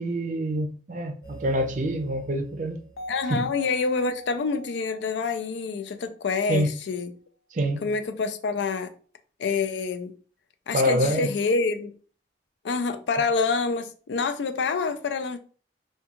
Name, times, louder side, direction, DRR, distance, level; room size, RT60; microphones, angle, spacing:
voice 1, 0.0-2.8 3.3-3.5 6.5-6.7 7.5-7.9 10.7-11.3, right 1 dB, 45° right, 0.5 m, -26 dB
sound 1, 1.2-5.9, right 1 dB, 60° left, 0.7 m, -42 dB
voice 2, 3.1-7.1 7.8-8.9 9.4-10.1 10.7-11.9 12.6-15.4, left 4 dB, 85° left, 0.4 m, -27 dB
3.5 x 2.2 x 2.9 m
head